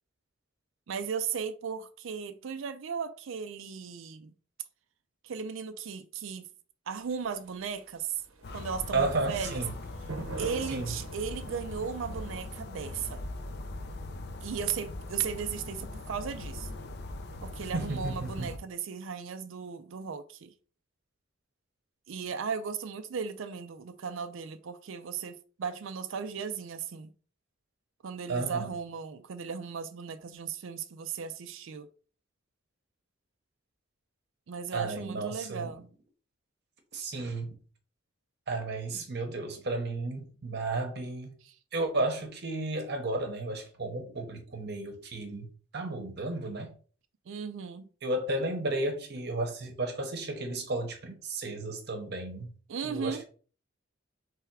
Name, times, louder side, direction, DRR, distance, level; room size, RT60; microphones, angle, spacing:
voice 1, 0.9-4.3 5.2-6.5 6.9-8.2 8.5-9.6 10.4-13.2 14.4-16.7 17.4-20.5 22.1-27.1 28.0-31.9 34.5-35.9 41.4-41.6 47.3-47.9 52.7-53.3, right 6 dB, 70° right, 0.4 m, -36 dB
sound 1, 7.0-12.6, right 2 dB, 85° right, 0.8 m, -44 dB
sound 2, 8.4-18.6, left 2 dB, 55° left, 0.5 m, -40 dB
voice 2, 8.9-9.7 10.7-10.9 17.7-18.5 28.3-28.7 34.7-35.7 36.9-37.6 38.5-41.4 41.7-46.7 48.0-52.5 52.8-53.3, right 2 dB, 55° right, 0.9 m, -33 dB
3.5 x 3.3 x 4.7 m
head